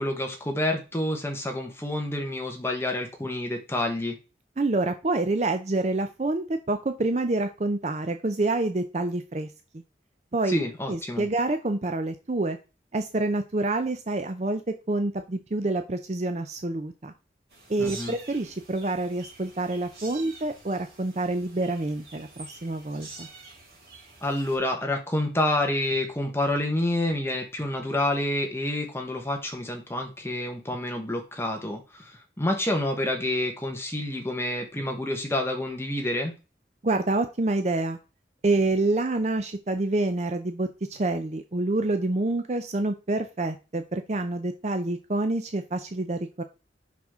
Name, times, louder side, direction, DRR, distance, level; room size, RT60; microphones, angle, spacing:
voice 1, 0.0-4.2 10.5-11.3 17.8-18.2 24.2-36.3, left 1 dB, 15° left, 3 dB, 1.2 m, -28 dB
voice 2, 4.6-9.5 10.3-10.6 10.9-12.6 12.9-17.1 17.7-23.3 36.8-38.0 38.4-46.4, right 2 dB, 40° right, 8 dB, 0.6 m, -27 dB
sound 1, 17.5-24.6, right 3 dB, 65° right, 3.5 m, -47 dB
5.9 x 5.8 x 3.7 m, 0.30 s
head